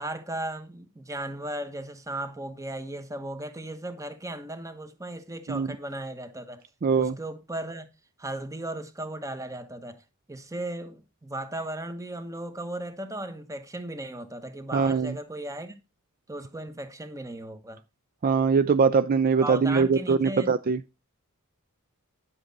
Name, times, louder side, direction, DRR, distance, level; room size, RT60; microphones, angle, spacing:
voice 1, 0.0-6.6 7.0-7.9 8.2-10.0 10.3-15.8 16.3-17.8 19.4-20.5, right 1 dB, 15° right, 1.1 m, -36 dB
voice 2, 6.8-7.1 14.7-15.1 18.2-21.0, right 5 dB, 40° right, 0.4 m, -22 dB
10.5 x 7.7 x 4.0 m
head